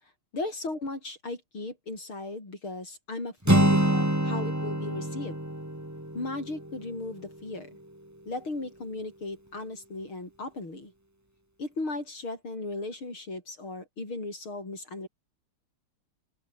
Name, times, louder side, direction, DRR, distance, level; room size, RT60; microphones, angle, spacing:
voice 1, 0.3-5.4 6.1-7.7 8.3-10.9 11.6-15.1, left 2 dB, 70° left, 8.4 m, -36 dB
Acoustic guitar, 3.4-7.4, right 1 dB, 5° right, 3.6 m, -26 dB
open air
omnidirectional pair, 2.4 m